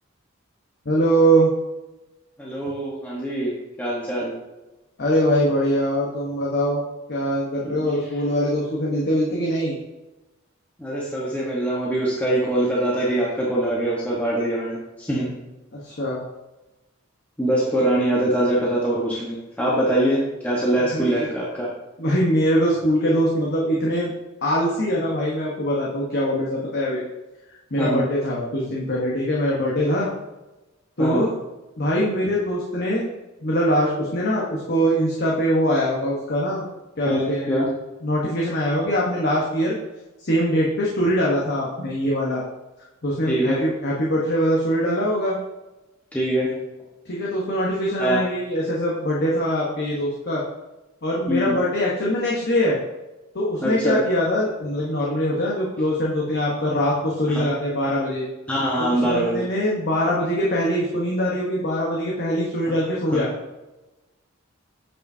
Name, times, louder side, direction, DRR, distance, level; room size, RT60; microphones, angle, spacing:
voice 1, 0.8-1.5 5.0-6.8 7.1-9.8 15.7-16.2 20.7-21.3 22.0-24.1 24.4-27.0 27.7-30.1 31.0-31.3 31.8-33.1 33.4-36.7 37.0-37.6 38.0-39.8 40.2-42.4 43.0-45.4 47.1-50.4 51.0-52.8 53.3-58.2 58.8-63.3, equal, 55° left, -4 dB, 1.0 m, -22 dB
voice 2, 2.4-3.5 3.8-4.3 7.7-8.0 10.8-15.3 17.4-21.7 27.8-28.1 31.0-31.3 37.0-37.7 43.2-43.6 46.1-46.5 48.0-48.2 51.3-51.6 53.6-54.0 57.3-57.5 58.5-59.4 63.1-63.2, right 1 dB, 10° left, -6 dB, 1.1 m, -23 dB
8.8 x 4.9 x 2.7 m, 1.1 s
head